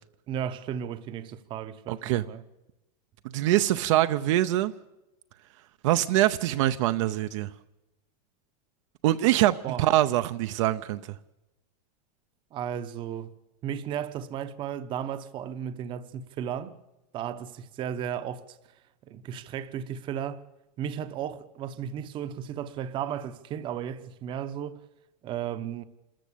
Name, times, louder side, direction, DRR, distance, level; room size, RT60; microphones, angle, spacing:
voice 1, 0.3-2.4 9.6-9.9 12.5-13.3 13.6-16.7 17.1-18.6 19.0-20.4 20.8-24.8 25.2-25.8, right 9 dB, 25° right, 0.8 m, -34 dB
voice 2, 1.9-2.2 3.3-4.7 5.8-7.5 9.0-11.0, right 14 dB, 50° right, 0.7 m, -24 dB
26.5 x 14.0 x 8.5 m
supercardioid pair, 165°, 20 cm